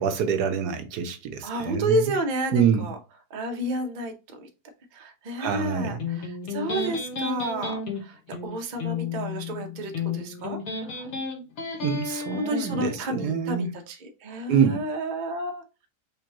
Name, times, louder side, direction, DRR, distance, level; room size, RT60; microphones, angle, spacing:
voice 1, 0.0-2.1 2.5-2.9 5.4-6.0 11.8-13.7 14.5-14.8, right 7 dB, 75° right, 1.2 m, -26 dB
voice 2, 1.4-2.9 3.3-4.5 4.9-11.1 12.3-15.6, right 1 dB, 40° right, 0.7 m, -31 dB
Electric guitar, 6.0-13.0, left 5 dB, 60° left, 1.8 m, -32 dB
5.2 x 3.5 x 2.9 m
omnidirectional pair, 1.8 m